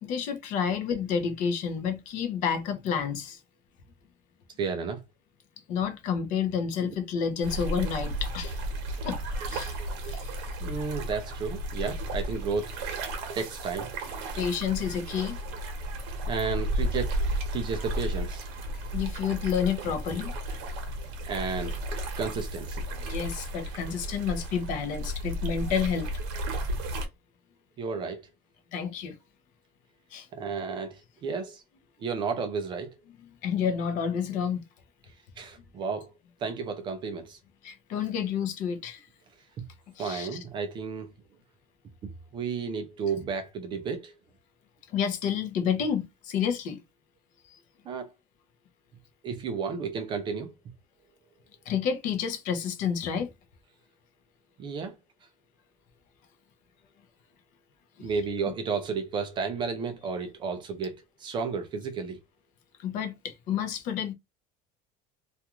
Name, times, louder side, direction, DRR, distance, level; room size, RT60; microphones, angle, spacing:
voice 1, 0.0-3.4 5.7-8.6 9.0-9.2 9.5-9.8 10.0-10.3 14.4-15.4 18.9-20.3 23.0-26.1 28.7-29.1 30.1-30.3 33.4-34.6 37.6-39.1 40.0-40.3 44.9-46.8 51.7-53.3 58.0-58.1 62.8-64.1, left 7 dB, 45° left, 0.6 m, -29 dB
voice 2, 4.6-5.0 6.8-6.9 10.6-12.8 13.4-13.9 16.3-17.2 17.5-18.5 21.3-21.8 22.1-22.8 27.8-28.3 30.3-31.6 32.0-33.0 35.4-36.1 36.4-37.4 40.0-41.1 42.0-44.1 47.9-48.1 49.2-50.5 54.6-55.0 58.0-62.2, right 5 dB, 25° right, 0.4 m, -32 dB
sound 1, 7.4-27.1, right 1 dB, 70° right, 0.9 m, -33 dB
2.4 x 2.2 x 2.9 m
cardioid pair, 180°, 18 cm